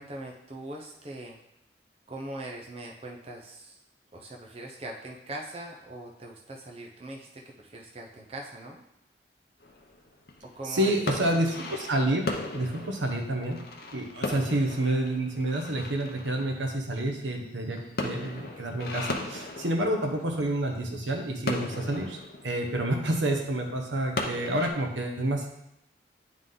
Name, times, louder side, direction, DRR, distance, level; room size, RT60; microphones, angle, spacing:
voice 1, 0.0-1.4 2.1-3.8 4.1-8.8 10.4-10.9, right 1 dB, 30° right, 0 dB, 0.6 m, -41 dB
sound 1, 9.6-24.7, left 2 dB, 55° left, 0.8 m, -37 dB
voice 2, 10.7-13.6 13.9-22.2 22.4-25.5, right 1 dB, 85° right, 2 dB, 1.1 m, -29 dB
9.3 x 3.8 x 3.8 m, 0.83 s
head